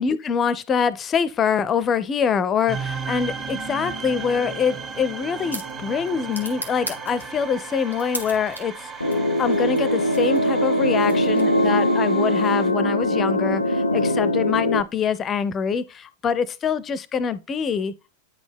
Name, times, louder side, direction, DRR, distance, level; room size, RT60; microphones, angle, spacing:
voice 1, 0.0-17.9, left 6 dB, 25° left, 0.4 m, -24 dB
sound 1, 2.7-12.7, right 5 dB, 30° right, 1.9 m, -35 dB
sound 2, 4.9-11.8, equal, 85° right, 1.0 m, -39 dB
sound 3, 9.0-14.8, left 1 dB, 85° left, 0.4 m, -21 dB
9.0 x 4.1 x 3.4 m
figure-of-eight pair, 90°, 0 cm